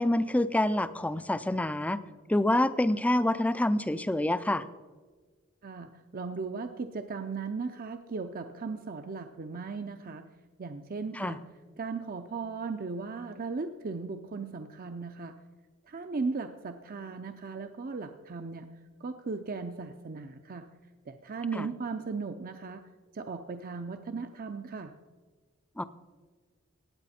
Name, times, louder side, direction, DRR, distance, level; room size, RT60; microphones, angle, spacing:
voice 1, 0.0-2.0 2.3-4.6 11.1-11.4 21.6-21.7 25.8-25.9, left 1 dB, 5° left, 14 dB, 0.4 m, -27 dB
voice 2, 5.6-10.2 10.6-11.4 11.8-15.4 15.9-18.7 19.0-20.7 21.1-22.8 23.1-24.9, right 4 dB, 45° right, 7 dB, 0.5 m, -37 dB
17.0 x 9.0 x 4.3 m, 1.4 s
head